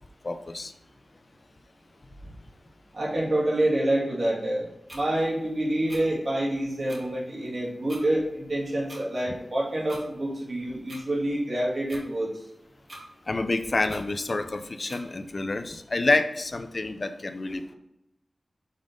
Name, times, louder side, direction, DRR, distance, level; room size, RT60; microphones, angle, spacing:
voice 1, 0.2-0.7 13.3-17.7, left 2 dB, 55° left, 9 dB, 0.5 m, -28 dB
voice 2, 2.9-12.3, right 1 dB, 65° right, -4 dB, 2.2 m, -27 dB
sound 1, 4.9-5.0 5.9-6.0 6.9-7.0 7.9-8.0 8.9-9.0 9.9-10.0 10.9-11.0 11.9-12.0 12.9-13.0 13.9-14.0 14.9-15.0, right 1 dB, 45° right, 1.9 m, -43 dB
5.4 x 3.8 x 5.1 m, 0.85 s
cardioid pair, 50°, 0 cm